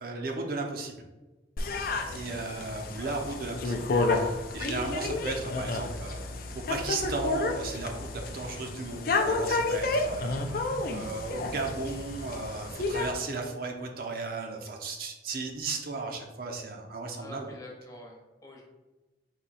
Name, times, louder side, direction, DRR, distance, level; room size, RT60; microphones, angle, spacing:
voice 1, 0.0-0.9 2.1-6.2 6.5-17.5, right 3 dB, 50° right, 2 dB, 0.5 m, -35 dB
sound 1, 1.6-13.1, left 3 dB, 50° left, 0.4 m, -31 dB
voice 2, 3.0-3.3 17.2-18.6, left 1 dB, 20° left, -1 dB, 0.8 m, -47 dB
4.3 x 2.7 x 4.0 m, 1.1 s
head